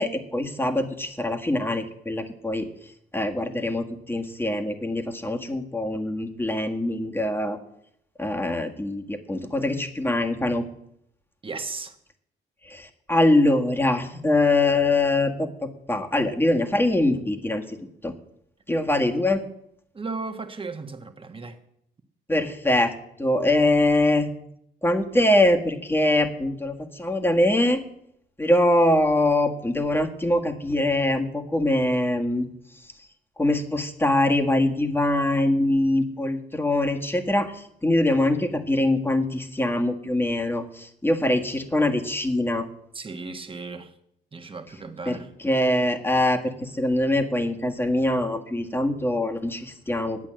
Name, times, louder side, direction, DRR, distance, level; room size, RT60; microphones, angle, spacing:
voice 1, 0.0-2.7 3.1-7.6 8.2-10.6 12.7-17.8 18.0-18.1 18.7-19.4 22.3-22.9 23.2-24.3 24.8-27.8 28.4-32.5 33.4-42.6 45.1-45.2 45.4-50.2, left 1 dB, 10° left, 4 dB, 1.7 m, -23 dB
voice 2, 11.4-11.9 19.9-21.6 42.9-43.9 44.3-45.3, right 4 dB, 25° right, 6 dB, 1.5 m, -35 dB
11.0 x 8.7 x 7.6 m, 0.74 s
cardioid pair, 90°, 20 cm